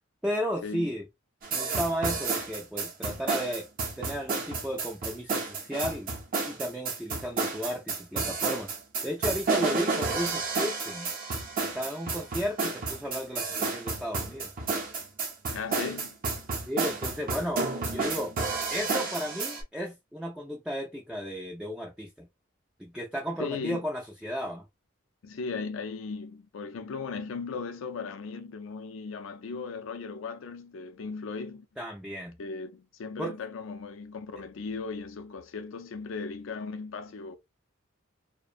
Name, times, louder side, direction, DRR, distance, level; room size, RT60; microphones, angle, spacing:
voice 1, 0.2-1.1 1.5-3.7 4.0-6.1 6.4-8.7 9.0-11.1 11.7-14.5 16.7-18.4 18.7-22.3 22.8-24.6 31.8-32.4 33.2-33.4, equal, 5° right, 0.3 m, -34 dB
sound 1, 1.4-19.6, right 4 dB, 45° right, 0.6 m, -31 dB
voice 2, 15.5-16.2 23.4-23.8 25.2-31.7 32.4-37.4, left 4 dB, 75° left, 0.4 m, -37 dB
2.5 x 2.1 x 2.4 m
head